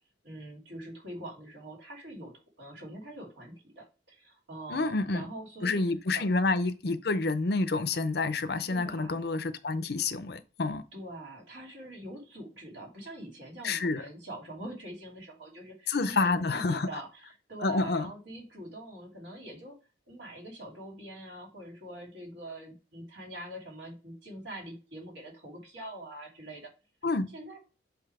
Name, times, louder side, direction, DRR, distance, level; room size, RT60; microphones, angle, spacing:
voice 1, 0.2-5.8 6.1-6.3 8.7-9.1 10.9-19.8 20.1-26.7 27.3-27.6, right 1 dB, 75° right, 2.8 m, -44 dB
voice 2, 4.7-5.2 5.6-10.8 13.6-14.0 15.9-17.0 17.6-18.1 27.0-27.3, left 3 dB, 55° left, 0.6 m, -28 dB
7.8 x 2.8 x 4.8 m
head